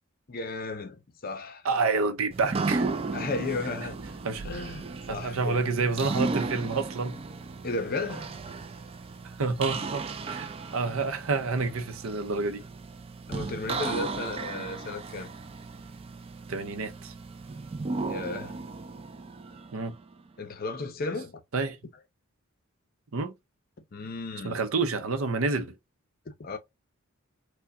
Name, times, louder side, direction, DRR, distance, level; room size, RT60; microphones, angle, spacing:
voice 1, 0.3-1.6 3.1-4.0 4.4-5.7 7.6-8.3 13.3-15.3 18.1-18.6 20.4-21.4 23.9-24.6 26.3-26.6, left 3 dB, 45° left, 0.6 m, -34 dB
voice 2, 1.6-2.9 4.2-4.5 5.1-7.2 9.4-12.6 16.5-17.1 19.7-19.9 21.5-21.8 23.1-23.3 24.4-25.8, right 4 dB, 75° right, 0.6 m, -28 dB
sound 1, 2.3-20.1, right 3 dB, 25° right, 0.3 m, -35 dB
4.6 x 2.2 x 2.6 m
head